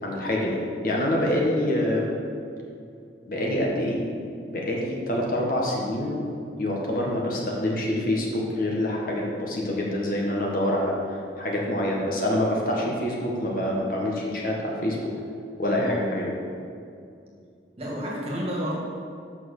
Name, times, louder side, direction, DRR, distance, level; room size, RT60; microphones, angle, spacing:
voice 1, 0.0-2.1 3.3-4.0 4.5-6.3 6.6-15.1 15.6-16.3, left 1 dB, 50° left, -2 dB, 1.5 m, -26 dB
voice 2, 17.8-18.8, equal, 35° right, -4 dB, 2.0 m, -30 dB
7.7 x 6.2 x 6.6 m, 2.4 s
head